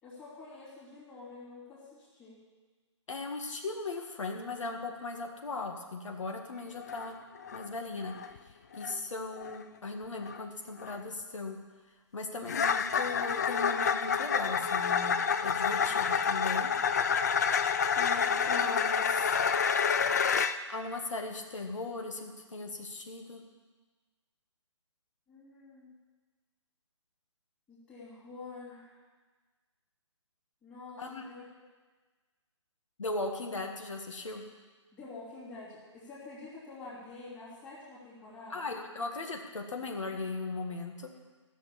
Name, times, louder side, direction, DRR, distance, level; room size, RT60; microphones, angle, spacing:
voice 1, 0.0-2.4 25.3-25.9 27.7-29.0 30.6-31.6 34.9-38.8, left 3 dB, 10° left, -8 dB, 3.0 m, -48 dB
voice 2, 3.1-7.2 7.5-8.1 8.7-11.6 12.1-15.2 15.4-16.7 18.0-19.4 20.7-23.4 31.0-31.2 33.0-34.4 38.5-41.1, left 3 dB, 80° left, 2 dB, 1.8 m, -38 dB
sound 1, 6.8-7.0 7.4-7.7 8.1-8.4 8.8-9.0 9.4-9.6 10.3-10.4 10.8-11.0 12.5-20.6, left 6 dB, 35° left, 0.4 m, -28 dB
14.0 x 6.6 x 8.5 m, 1.3 s
hypercardioid pair, 165°, 16 cm